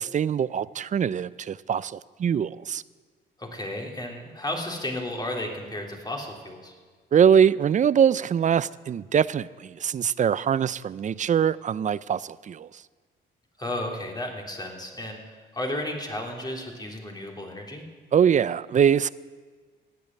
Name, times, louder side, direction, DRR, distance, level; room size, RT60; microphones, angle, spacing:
voice 1, 0.0-2.8 7.1-12.7 18.1-19.1, right 8 dB, 40° right, 19 dB, 0.5 m, -23 dB
voice 2, 3.4-6.7 13.6-17.8, left 1 dB, 20° left, 0 dB, 3.3 m, -33 dB
15.5 x 8.6 x 9.8 m, 1.5 s
cardioid pair, 90°, 20 cm